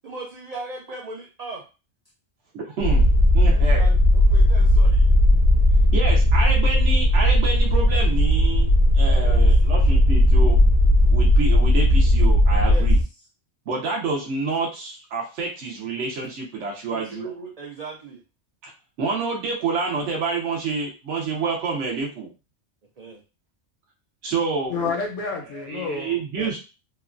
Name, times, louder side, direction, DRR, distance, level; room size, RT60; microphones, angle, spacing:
voice 1, 0.0-1.6 3.5-5.1 9.2-9.7 12.6-12.9 13.2-13.3 16.9-18.2 23.0-23.2, right 3 dB, 55° right, -1 dB, 0.4 m, -38 dB
voice 2, 2.5-3.1 3.3-3.8 5.9-10.6 11.1-13.0 13.7-17.2 19.0-22.3 24.2-24.7 25.7-26.6, right 4 dB, 75° right, -1 dB, 1.0 m, -28 dB
sound 1, 2.8-13.0, left 1 dB, 60° left, 0.7 m, -16 dB
voice 3, 24.7-26.6, left 4 dB, 80° left, 2 dB, 1.1 m, -29 dB
2.9 x 2.2 x 2.4 m, 0.31 s
omnidirectional pair, 1.2 m